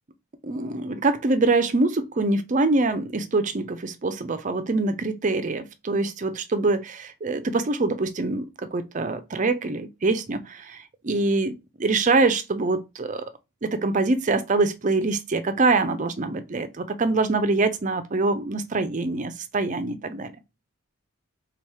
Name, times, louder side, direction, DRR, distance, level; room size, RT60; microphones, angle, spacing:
voice 1, 0.4-13.3 13.6-20.3, right 3 dB, 35° right, 0.5 m, -24 dB
3.6 x 2.9 x 4.7 m
head